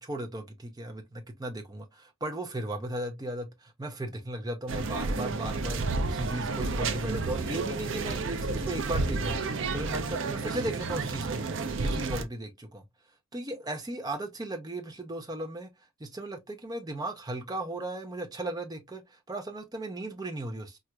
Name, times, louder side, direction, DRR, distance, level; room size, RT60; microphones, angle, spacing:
voice 1, 0.0-11.4 11.8-12.8 13.3-15.7 16.0-20.8, right 1 dB, 20° right, 0.5 m, -36 dB
sound 1, 4.7-12.2, right 3 dB, 65° right, 0.5 m, -31 dB
4.3 x 2.5 x 2.2 m
head